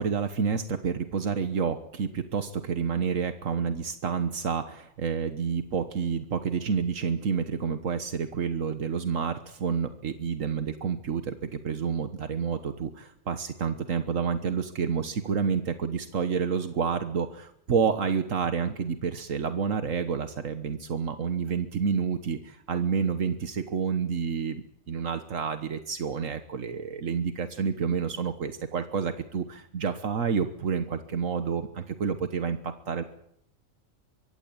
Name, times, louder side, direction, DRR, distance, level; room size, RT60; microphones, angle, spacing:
voice 1, 0.0-33.0, right 6 dB, 80° right, 9 dB, 1.6 m, -29 dB
24.0 x 16.0 x 8.8 m, 0.73 s
omnidirectional pair, 1.4 m